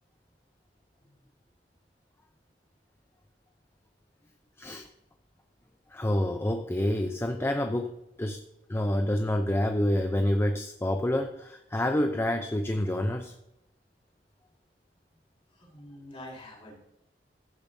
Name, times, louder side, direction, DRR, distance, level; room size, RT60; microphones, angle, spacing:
voice 1, 4.6-4.9 5.9-8.4 8.7-13.3, left 1 dB, 15° left, 5 dB, 0.6 m, -28 dB
voice 2, 15.5-16.8, left 1 dB, 35° left, -4 dB, 4.1 m, -47 dB
15.5 x 6.8 x 2.7 m, 0.86 s
head